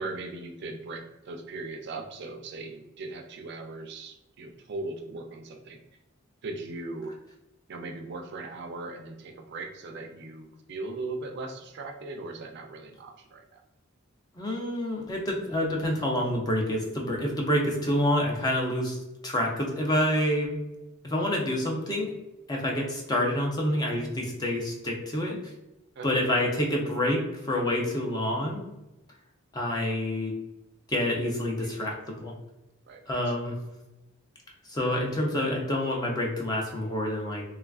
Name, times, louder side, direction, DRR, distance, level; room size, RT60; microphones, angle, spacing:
voice 1, 0.0-5.8 6.4-7.1 7.7-13.6 21.2-21.4 26.0-26.1 31.6-31.9 32.9-33.3, right 3 dB, 55° right, 3 dB, 0.4 m, -39 dB
voice 2, 14.4-19.0 19.2-20.6 21.0-22.1 22.5-25.4 26.0-28.6 29.5-30.4 30.9-32.3 33.1-33.6 34.7-37.4, left 1 dB, 20° left, -1 dB, 0.5 m, -27 dB
3.2 x 2.3 x 2.3 m, 0.96 s
head